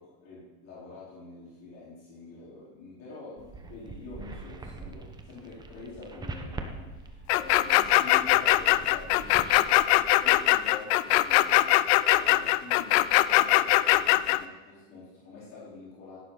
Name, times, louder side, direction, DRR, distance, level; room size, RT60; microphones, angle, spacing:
voice 1, 0.0-16.2, left 3 dB, 45° left, -7 dB, 4.3 m, -46 dB
sound 1, 3.4-10.5, right 3 dB, 10° right, 1.0 m, -43 dB
sound 2, 7.3-14.4, left 17 dB, 70° left, 0.6 m, -21 dB
17.0 x 12.0 x 4.1 m, 1.1 s
supercardioid pair, 150°, 34 cm